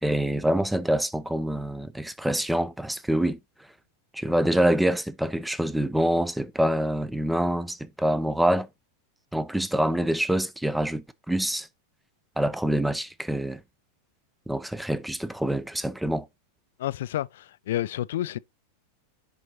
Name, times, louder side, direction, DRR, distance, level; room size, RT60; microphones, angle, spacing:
voice 1, 0.0-3.4 4.1-8.7 9.3-11.7 12.4-13.6 14.5-16.3, right 1 dB, 5° right, 0.5 m, -26 dB
voice 2, 16.8-18.4, left 13 dB, 55° left, 0.3 m, -30 dB
10.5 x 3.9 x 2.8 m
figure-of-eight pair, 90°, 0 cm